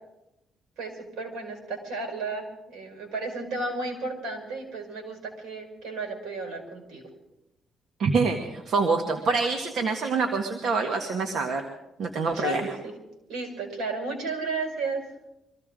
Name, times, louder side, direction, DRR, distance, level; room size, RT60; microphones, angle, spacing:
voice 1, 0.8-7.0 12.3-12.9 13.3-15.0, right 3 dB, 80° right, 4 dB, 5.5 m, -33 dB
voice 2, 8.0-11.6 12.0-12.7, right 4 dB, 65° right, 4 dB, 1.7 m, -26 dB
24.5 x 15.5 x 3.8 m, 0.91 s
cardioid pair, 90°, 0 cm